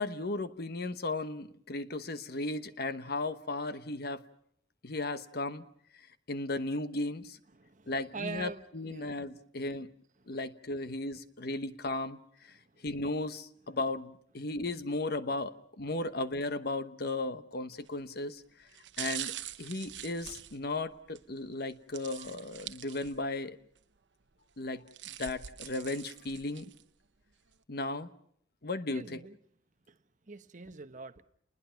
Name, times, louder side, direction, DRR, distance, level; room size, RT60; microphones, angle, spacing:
voice 1, 0.0-4.2 4.8-5.6 5.9-7.4 7.9-9.9 10.3-12.2 12.4-12.5 12.8-18.7 19.0-23.6 24.6-26.7 27.7-28.1 28.6-29.2, left 2 dB, 60° left, 12 dB, 1.1 m, -36 dB
voice 2, 7.6-9.2 10.3-10.4 12.5-12.9 28.9-29.4 29.9-30.0 30.3-31.2, right 4 dB, 45° right, 11 dB, 1.0 m, -44 dB
sound 1, 17.7-18.0 18.7-21.2 21.9-23.4 23.8-23.9 24.6-26.8 27.3-27.4, right 12 dB, 75° right, 0.9 m, -43 dB
30.0 x 21.0 x 5.8 m, 0.67 s
head